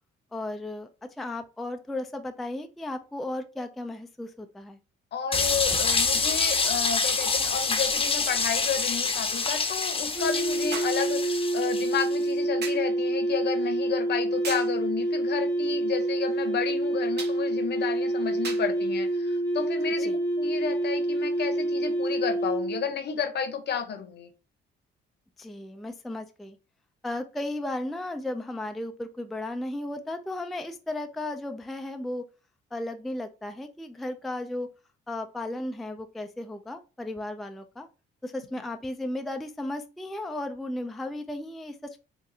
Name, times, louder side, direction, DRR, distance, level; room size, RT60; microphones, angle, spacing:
voice 1, 0.3-0.9 1.2-4.8 20.0-20.2 25.4-26.6 27.0-32.2 32.7-34.7 35.1-37.9 38.2-42.0, left 1 dB, ahead, 6 dB, 0.3 m, -35 dB
voice 2, 5.1-24.3, left 7 dB, 60° left, 7 dB, 0.8 m, -32 dB
sound 1, 5.3-12.2, left 4 dB, 25° left, 0.7 m, -27 dB
sound 2, 10.1-22.9, right 1 dB, 15° right, 1.0 m, -27 dB
sound 3, 10.7-11.1 12.6-12.9 14.4-14.8 17.2-17.4 18.4-18.7 19.8-19.9, right 5 dB, 55° right, 0.9 m, -37 dB
3.9 x 2.5 x 2.7 m, 0.32 s
cardioid pair, 90°, 20 cm